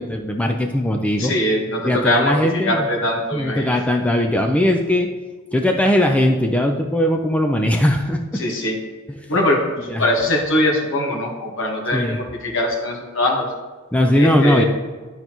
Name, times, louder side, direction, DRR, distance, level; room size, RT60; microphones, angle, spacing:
voice 1, 0.0-1.3 1.8-2.8 3.3-5.1 5.5-8.4 9.9-10.0 11.9-12.2 13.9-14.6, left 1 dB, 5° left, 3 dB, 0.4 m, -19 dB
voice 2, 1.2-3.8 8.3-8.8 9.3-13.5 14.1-14.7, left 1 dB, 65° left, 0 dB, 1.5 m, -21 dB
12.0 x 4.0 x 3.0 m, 1.4 s
head